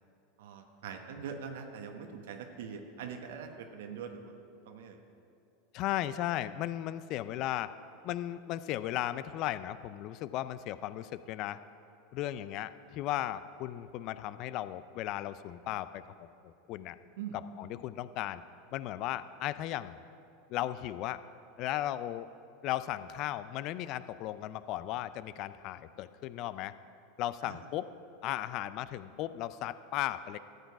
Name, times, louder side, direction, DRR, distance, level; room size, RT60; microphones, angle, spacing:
voice 1, 0.4-4.3 4.6-5.0 17.2-17.4 27.4-27.6, right 7 dB, 75° right, 5 dB, 1.0 m, -43 dB
voice 2, 5.7-7.7 8.0-11.6 12.1-16.0 16.4-17.0 17.6-18.4 18.7-20.0 20.5-21.2 21.6-22.3 22.6-26.7 27.2-27.9 28.2-30.4, left 13 dB, 50° left, 15 dB, 0.4 m, -36 dB
13.0 x 8.1 x 4.7 m, 2.5 s
hypercardioid pair, 95°, 0 cm